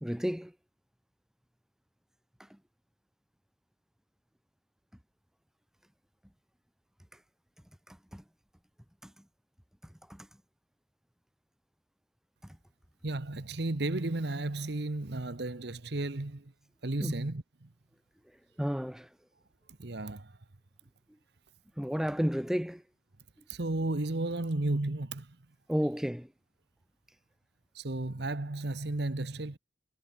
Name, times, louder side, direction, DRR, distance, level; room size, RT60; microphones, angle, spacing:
voice 1, 0.0-0.5 7.9-8.2 10.2-10.3 17.0-17.1 18.6-19.1 21.8-22.8 25.7-26.3, equal, 5° right, 0.6 m, -31 dB
voice 2, 13.0-16.5 16.8-17.7 19.8-20.4 23.5-25.4 27.7-29.6, right 2 dB, 55° right, 1.1 m, -33 dB
head